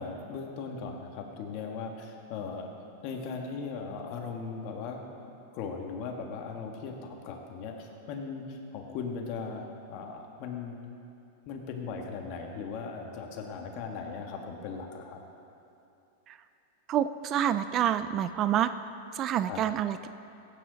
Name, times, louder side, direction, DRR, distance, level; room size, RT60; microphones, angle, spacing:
voice 1, 0.0-2.7 3.0-5.0 5.5-10.8 11.5-15.2 19.5-19.6, left 5 dB, 50° left, 2 dB, 1.6 m, -38 dB
voice 2, 16.9-18.7 19.1-20.1, right 10 dB, 35° right, 12 dB, 0.4 m, -27 dB
15.0 x 9.1 x 4.0 m, 2.8 s
hypercardioid pair, 125°, 0 cm